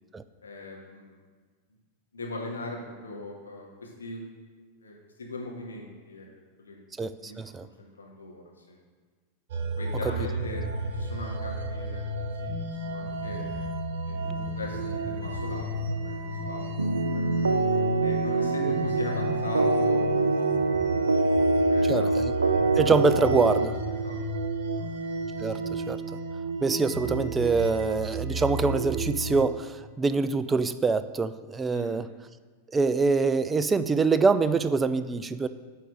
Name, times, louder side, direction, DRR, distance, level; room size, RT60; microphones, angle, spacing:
voice 1, 0.4-1.1 2.1-4.2 4.8-6.8 7.2-7.4 7.8-8.8 9.8-10.6 10.9-12.0 12.4-12.5 12.8-13.6 14.0-15.6 16.0-16.6 16.9-17.2 18.0-22.7 23.9-24.2 24.6-24.9 31.7-31.9, left 2 dB, 70° left, -1 dB, 1.6 m, -40 dB
voice 2, 7.0-7.7 21.8-22.3 22.8-23.8 25.4-26.0 26.6-32.1 32.7-35.5, right 4 dB, 15° right, 13 dB, 0.3 m, -25 dB
sound 1, 9.5-29.4, right 1 dB, 55° right, 0.8 m, -32 dB
sound 2, 16.8-23.7, right 3 dB, 75° right, 0.5 m, -25 dB
9.1 x 3.7 x 6.4 m, 1.5 s
figure-of-eight pair, 90°, 0 cm